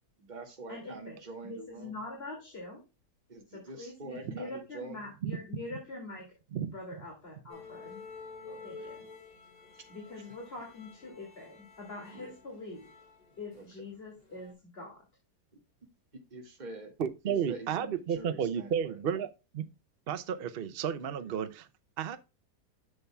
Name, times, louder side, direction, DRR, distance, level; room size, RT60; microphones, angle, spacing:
voice 1, 0.2-1.9 3.3-5.1 8.4-8.9 9.7-9.8 12.1-12.4 13.5-13.6 16.3-16.9 17.2-19.2, right 3 dB, 25° right, 2.0 m, -46 dB
voice 2, 0.7-2.8 3.5-8.0 8.6-9.0 9.9-12.9 13.4-15.0, left 2 dB, 35° left, 2.6 m, -44 dB
sound 1, 7.5-13.9 14.2-14.5, left 4 dB, 70° left, 4.1 m, -50 dB
voice 3, 17.0-19.3 19.5-19.7 20.1-21.7 22.0-22.2, right 8 dB, 60° right, 0.6 m, -32 dB
11.0 x 6.9 x 2.2 m
omnidirectional pair, 1.8 m